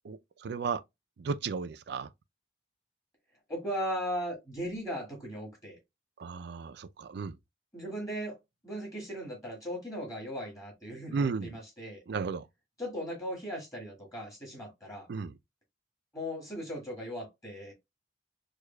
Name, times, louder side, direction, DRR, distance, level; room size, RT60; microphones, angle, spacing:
voice 1, 0.0-0.8 1.2-2.1 6.2-7.4 11.1-11.6 12.1-12.5 15.1-15.3, right 5 dB, 65° right, 0.4 m, -34 dB
voice 2, 3.5-5.8 7.7-8.4 8.6-12.0 12.8-15.1 16.1-17.7, equal, 20° left, 1.7 m, -37 dB
6.3 x 2.3 x 2.2 m
head